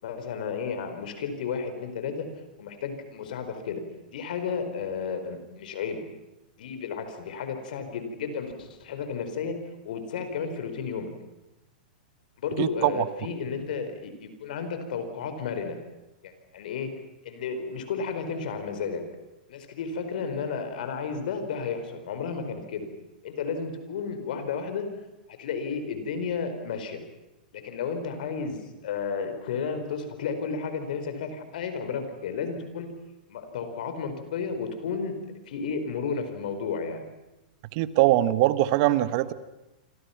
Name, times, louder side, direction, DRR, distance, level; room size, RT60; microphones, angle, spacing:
voice 1, 0.0-2.3 2.6-3.8 4.1-6.0 6.6-9.6 9.8-11.1 12.4-15.8 16.2-16.9 17.2-19.0 19.5-22.9 23.2-24.9 25.3-27.0 27.5-32.9 33.3-35.2 35.5-37.0, left 5 dB, 65° left, 8 dB, 4.7 m, -32 dB
voice 2, 12.6-13.0 37.7-39.3, right 15 dB, 50° right, 14 dB, 1.3 m, -22 dB
27.5 x 26.0 x 5.9 m, 0.98 s
hypercardioid pair, 115°, 5 cm